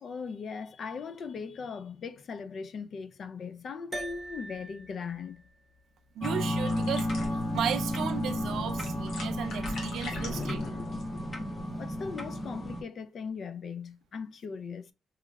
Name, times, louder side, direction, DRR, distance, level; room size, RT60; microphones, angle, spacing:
voice 1, 0.0-5.4 10.1-11.5 11.8-14.9, left 5 dB, 55° left, 0.3 m, -39 dB
sound 1, 3.9-8.5, right 2 dB, 15° right, 0.8 m, -46 dB
sound 2, 6.2-12.8, left 1 dB, 20° left, 0.8 m, -32 dB
voice 2, 6.2-7.1 7.4-10.6, right 9 dB, 75° right, 0.4 m, -34 dB
sound 3, 6.6-11.7, left 1 dB, 70° left, 1.2 m, -43 dB
3.5 x 3.0 x 2.2 m
cardioid pair, 90°, 0 cm